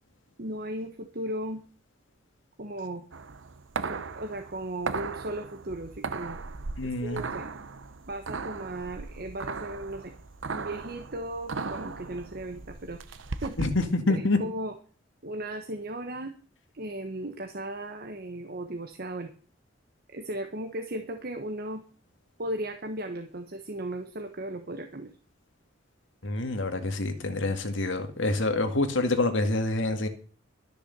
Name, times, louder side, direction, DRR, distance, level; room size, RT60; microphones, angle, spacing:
voice 1, 0.4-1.6 2.6-3.0 3.8-6.4 7.0-7.6 8.0-10.1 10.5-13.6 14.1-14.7 15.2-16.3 16.7-19.3 20.1-21.8 22.4-25.1, right 1 dB, 55° right, 5 dB, 1.2 m, -36 dB
sound 1, 3.1-13.9, right 4 dB, 80° right, 0.9 m, -37 dB
voice 2, 6.8-7.2 13.6-14.4 26.2-30.1, left 2 dB, 80° left, 7 dB, 2.0 m, -27 dB
13.0 x 6.8 x 6.9 m, 0.40 s
head